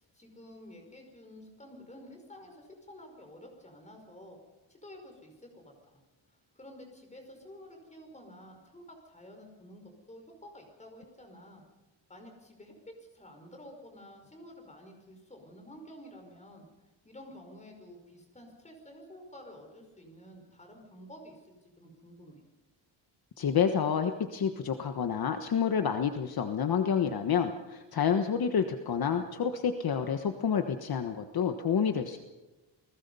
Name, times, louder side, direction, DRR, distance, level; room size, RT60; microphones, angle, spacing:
voice 1, 0.0-4.4 4.7-6.0 6.5-11.6 12.1-16.6 17.0-22.4, left 1 dB, 15° left, 3 dB, 5.2 m, -51 dB
voice 2, 23.4-32.2, left 7 dB, 50° left, 6 dB, 1.3 m, -29 dB
29.5 x 20.0 x 5.5 m, 1.1 s
wide cardioid pair, 170°, 46 cm